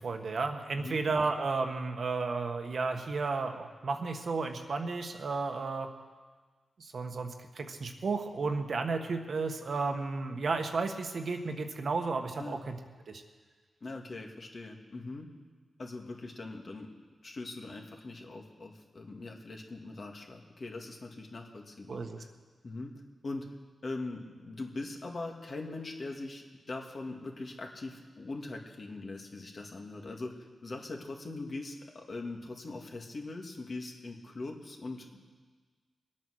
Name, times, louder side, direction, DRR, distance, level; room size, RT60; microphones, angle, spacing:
voice 1, 0.0-5.9 6.8-12.8 13.1-13.2 21.9-22.2, right 4 dB, 65° right, 5 dB, 1.4 m, -33 dB
voice 2, 13.8-15.3 15.8-16.9 17.2-22.3 22.6-22.9 23.2-23.5 23.8-30.4 30.6-35.2, left 2 dB, 50° left, 1 dB, 2.0 m, -41 dB
21.0 x 8.8 x 6.4 m, 1.4 s
cardioid pair, 70°, 0 cm